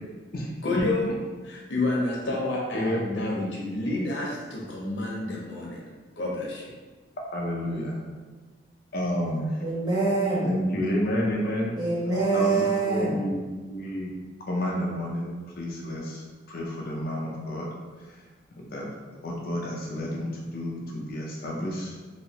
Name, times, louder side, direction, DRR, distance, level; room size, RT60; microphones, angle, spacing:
voice 1, 0.6-1.0 1.4-5.8 6.2-6.7, left 2 dB, 80° left, -3 dB, 0.8 m, -29 dB
voice 2, 2.7-3.2 7.3-8.0 8.9-9.5 10.4-11.7 12.3-14.1 14.5-17.7 18.1-18.2 18.6-18.9 19.2-21.9, left 1 dB, 55° left, -3 dB, 0.5 m, -30 dB
voice 3, 9.6-10.5 11.8-13.2, right 3 dB, 20° right, -8 dB, 1.0 m, -25 dB
3.1 x 2.7 x 2.8 m, 1.4 s
head